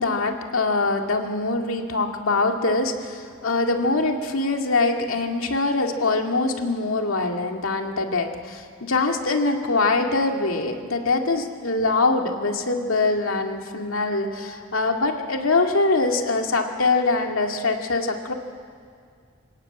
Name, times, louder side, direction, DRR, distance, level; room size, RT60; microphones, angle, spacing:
voice 1, 0.0-18.3, left 3 dB, 85° left, 3 dB, 2.2 m, -23 dB
27.0 x 17.5 x 8.8 m, 2.1 s
head